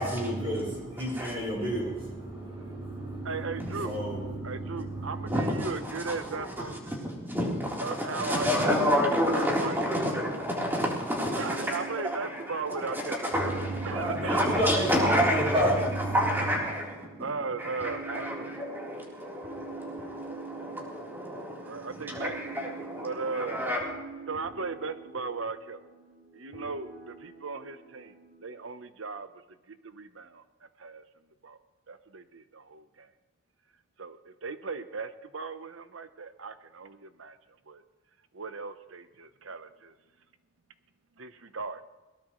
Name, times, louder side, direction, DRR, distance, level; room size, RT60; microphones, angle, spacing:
voice 1, 0.0-5.4 6.6-6.7 13.4-16.3, right 1 dB, 30° right, 6.7 m, -31 dB
voice 2, 3.2-3.9 4.4-6.8 7.8-8.8 9.3-9.8 11.4-13.2 13.8-14.5 17.2-18.3 21.6-22.4 23.0-23.6 24.3-25.8 26.3-28.1 28.4-29.3 29.7-30.4 30.8-31.0 31.4-31.6 31.9-33.1 34.0-37.4 37.7-37.8 38.3-39.9 41.2-41.8, right 4 dB, 90° right, 1.0 m, -37 dB
voice 3, 5.3-17.3 17.6-23.8, equal, 10° right, 3.9 m, -30 dB
sound 1, 11.2-28.7, right 4 dB, 50° right, 3.4 m, -45 dB
21.5 x 18.0 x 3.2 m
head